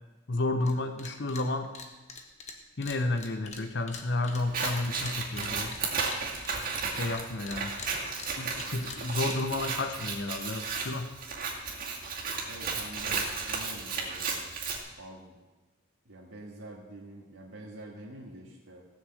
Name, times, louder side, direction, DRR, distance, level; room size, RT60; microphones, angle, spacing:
voice 1, 0.3-1.7 2.8-5.8 6.9-7.8 8.4-11.1, left 2 dB, 55° left, 7 dB, 0.9 m, -31 dB
sound 1, 0.6-0.7 1.0-1.5 1.7-7.2 7.5-10.0, left 5 dB, 30° left, 1.2 m, -44 dB
Scissors, 4.4-14.8, right 4 dB, 40° right, 2.3 m, -34 dB
voice 2, 12.5-14.5 15.0-15.4 16.1-18.9, right 1 dB, 85° right, -5 dB, 1.9 m, -46 dB
17.0 x 6.4 x 7.8 m, 1.2 s
head